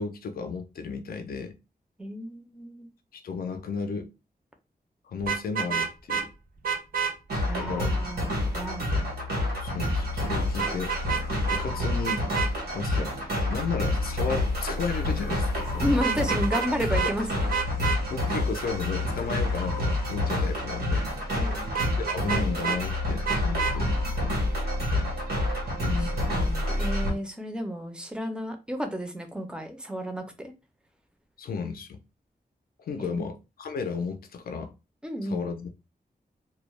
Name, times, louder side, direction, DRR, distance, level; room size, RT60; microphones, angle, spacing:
voice 1, 0.0-1.6 3.1-4.1 5.0-6.3 7.6-7.9 9.6-11.0 11.5-12.3 12.7-13.1 13.5-16.0 16.9-17.1 18.1-21.0 22.0-24.0 25.8-26.4 31.4-32.0 32.8-34.7 35.2-35.7, left 5 dB, 70° left, 0.4 m, -33 dB
voice 2, 2.0-2.9 7.5-8.9 15.8-17.5 21.3-21.7 25.9-30.5 33.0-33.2 35.0-35.4, equal, 5° right, 0.4 m, -32 dB
Vehicle horn car horn honking, 5.2-6.3 6.6-7.1 10.6-11.2 11.5-11.6 12.1-12.5 15.9-16.7 17.0-17.1 17.5-18.0 21.8-22.8 23.3-23.8, right 6 dB, 65° right, 0.5 m, -28 dB
sound 1, 7.3-27.1, left 1 dB, 85° right, 1.0 m, -28 dB
2.2 x 2.0 x 3.0 m
wide cardioid pair, 175°, 16 cm